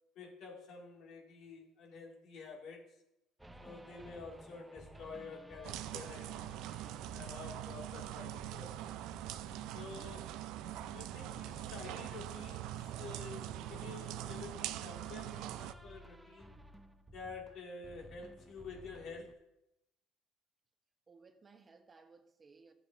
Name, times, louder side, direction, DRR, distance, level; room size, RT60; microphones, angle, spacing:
voice 1, 0.2-3.0 3.6-6.5 7.1-9.0 9.7-10.3 10.9-16.5 17.1-19.5, left 4 dB, 65° left, 2.2 m, -49 dB
sound 1, 3.4-19.3, right 1 dB, 10° right, 0.6 m, -56 dB
sound 2, 5.6-15.7, right 13 dB, 75° right, 0.4 m, -43 dB
voice 2, 21.1-22.7, right 4 dB, 30° right, 1.0 m, -61 dB
12.5 x 7.7 x 2.6 m
supercardioid pair, 85°, 0 cm